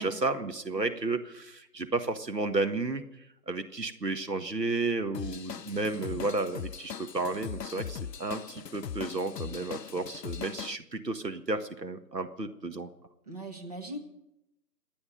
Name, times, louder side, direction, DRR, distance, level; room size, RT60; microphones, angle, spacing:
voice 1, 0.0-3.0 3.5-12.9, right 3 dB, 85° right, 8 dB, 1.7 m, -32 dB
Drum kit / Drum, 5.1-10.8, left 8 dB, 90° left, 0.6 m, -40 dB
voice 2, 13.3-14.0, right 2 dB, 25° right, 2 dB, 1.3 m, -40 dB
28.0 x 9.6 x 5.3 m, 0.86 s
figure-of-eight pair, 165°, 48 cm